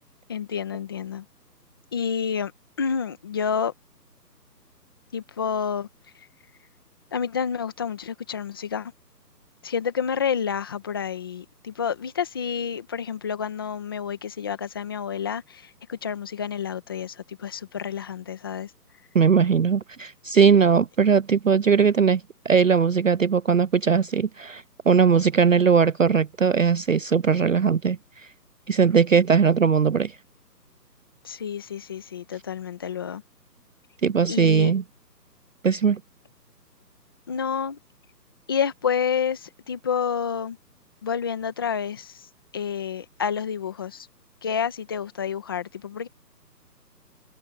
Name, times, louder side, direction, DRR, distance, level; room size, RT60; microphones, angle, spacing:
voice 1, 0.3-1.2 1.9-2.5 2.8-3.7 5.1-5.9 7.1-8.9 9.6-18.7 31.2-33.2 34.3-34.7 37.3-37.8 38.5-40.6 41.0-44.1 44.4-46.1, left 7 dB, 15° left, 1.3 m, -29 dB
voice 2, 19.1-22.2 22.5-28.0 28.7-30.1 34.0-34.8 35.6-36.0, right 6 dB, 55° right, 0.5 m, -19 dB
hypercardioid pair, 170°, 49 cm